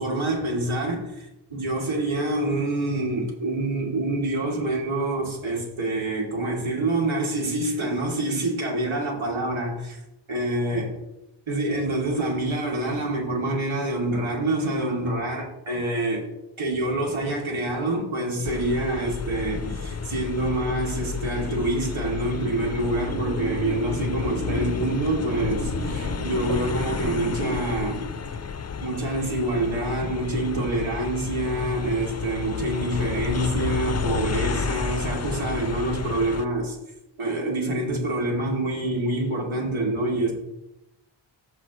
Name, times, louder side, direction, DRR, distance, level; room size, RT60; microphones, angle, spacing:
voice 1, 0.0-10.0 10.3-10.9 11.5-16.2 16.6-28.1 28.8-36.8 37.2-40.3, right 2 dB, 75° right, -2 dB, 2.7 m, -26 dB
sound 1, 18.4-36.5, left 6 dB, 35° left, 0.5 m, -31 dB
sound 2, 19.8-28.6, right 3 dB, 25° right, 1.1 m, -36 dB
14.0 x 5.1 x 3.1 m, 0.90 s
wide cardioid pair, 95°, 48 cm